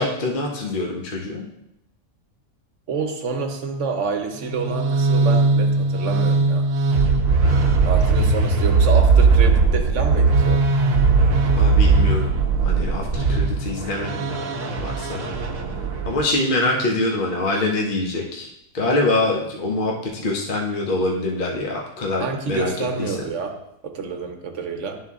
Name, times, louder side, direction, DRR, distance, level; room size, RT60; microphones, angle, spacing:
voice 1, 0.0-1.4 7.4-7.8 11.6-12.3 12.6-15.3 16.1-18.5 18.7-23.2, left 2 dB, 40° left, 0 dB, 1.0 m, -25 dB
voice 2, 2.9-6.6 7.8-10.6 22.2-25.0, right 4 dB, 65° right, 5 dB, 1.1 m, -28 dB
sound 1, 4.4-16.2, right 4 dB, 80° right, 1.1 m, -19 dB
11.0 x 3.8 x 3.6 m, 0.81 s
omnidirectional pair, 1.5 m